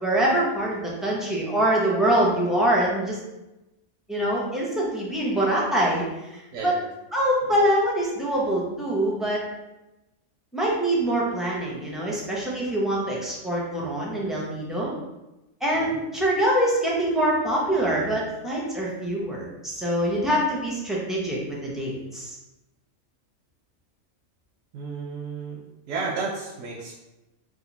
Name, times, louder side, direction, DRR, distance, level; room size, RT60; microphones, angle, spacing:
voice 1, 0.0-3.2 4.1-6.0 6.3-6.7 7.1-9.4 10.5-14.9 15.6-22.4, right 1 dB, ahead, -5 dB, 0.3 m, -24 dB
voice 2, 6.5-6.9 7.4-7.5 15.7-16.0 24.7-25.6 25.9-26.9, right 4 dB, 85° right, -3 dB, 1.0 m, -32 dB
2.8 x 2.5 x 4.0 m, 0.98 s
omnidirectional pair, 1.3 m